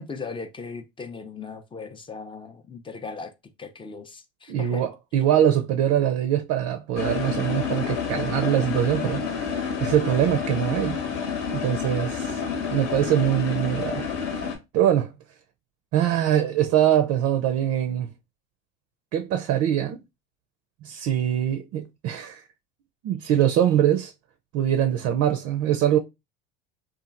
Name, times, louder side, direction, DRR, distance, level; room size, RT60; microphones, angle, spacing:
voice 1, 0.0-3.3 3.6-4.8, left 4 dB, 15° left, 0.5 m, -38 dB
voice 2, 4.5-11.0 11.5-12.4 12.7-14.0 14.7-15.1 15.9-18.1 19.1-20.0 20.8-22.4 23.0-24.1 24.5-26.0, right 10 dB, 50° right, 0.5 m, -23 dB
sound 1, 7.0-14.6, left 6 dB, 65° left, 1.1 m, -29 dB
2.8 x 2.4 x 2.4 m
supercardioid pair, 90°, 31 cm